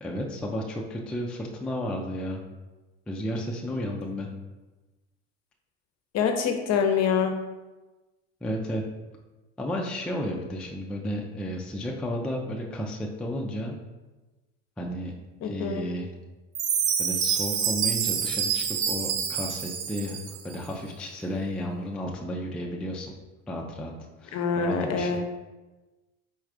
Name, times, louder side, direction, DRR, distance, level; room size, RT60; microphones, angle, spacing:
voice 1, 0.0-2.4 3.1-4.3 8.4-8.8 9.6-13.8 14.8-15.1 15.4-16.1 17.0-23.1 23.5-23.9 24.2-25.2, equal, 5° left, -1 dB, 0.4 m, -33 dB
voice 2, 6.1-7.3 15.4-15.9 24.3-25.2, left 6 dB, 45° left, 5 dB, 0.7 m, -25 dB
Chime, 16.6-20.6, right 7 dB, 90° right, 0.7 m, -27 dB
4.4 x 2.4 x 4.7 m, 1.2 s
supercardioid pair, 100°, 38 cm